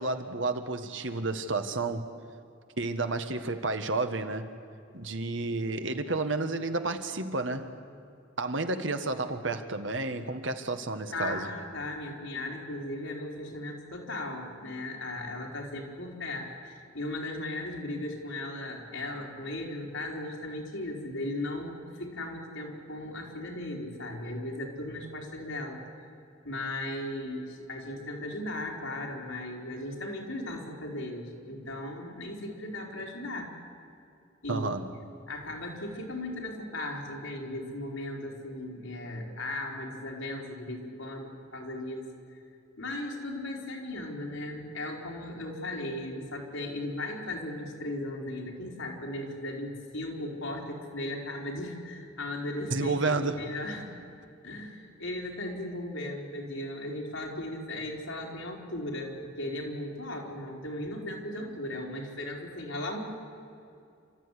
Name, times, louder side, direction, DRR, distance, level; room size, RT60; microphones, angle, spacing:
voice 1, 0.0-2.0 2.8-4.5 4.9-7.7 8.4-11.5 34.5-34.9 52.7-53.5, right 3 dB, 70° right, 8 dB, 1.6 m, -31 dB
voice 2, 11.1-25.8 26.4-33.5 34.4-34.7 35.3-42.1 42.8-53.9 54.4-63.0, left 1 dB, 85° left, 0 dB, 4.2 m, -37 dB
29.5 x 14.0 x 9.9 m, 2.5 s
head